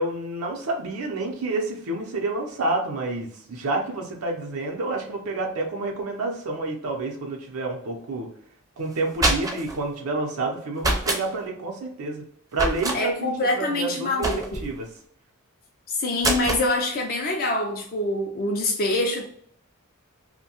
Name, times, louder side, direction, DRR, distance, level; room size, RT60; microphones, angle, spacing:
voice 1, 0.0-8.3 8.8-12.2 12.5-13.1 13.4-14.3 14.6-14.9, right 2 dB, 80° right, 1 dB, 0.6 m, -29 dB
sound 1, 8.9-9.8 10.8-11.2 12.5-13.0 14.2-14.7 16.2-16.7, right 1 dB, 15° right, 0.5 m, -25 dB
voice 2, 12.9-14.6 15.9-19.2, left 2 dB, 45° left, 1 dB, 0.4 m, -25 dB
2.6 x 2.1 x 2.8 m, 0.64 s
head